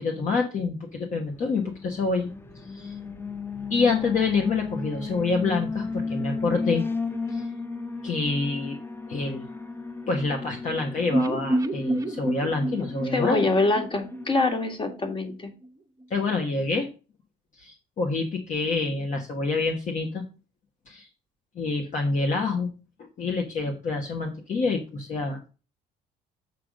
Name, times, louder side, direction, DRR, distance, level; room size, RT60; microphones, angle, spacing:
voice 1, 0.0-2.3 2.6-3.0 3.7-6.8 7.3-7.5 8.0-8.8 9.1-9.4 10.1-13.4 16.1-16.9 17.6-20.2 20.9-21.1 21.5-22.7 23.2-25.5, left 3 dB, 50° left, 2 dB, 1.3 m, -27 dB
Alarm, 1.3-14.7, left 3 dB, 15° left, 0.7 m, -35 dB
sound 1, 11.1-15.0 15.2-15.3 15.6-15.7, right 1 dB, 20° right, 0.9 m, -29 dB
voice 2, 13.1-15.5, left 3 dB, 30° left, 6 dB, 1.9 m, -24 dB
7.7 x 3.8 x 6.3 m, 0.33 s
cardioid pair, 110°, 17 cm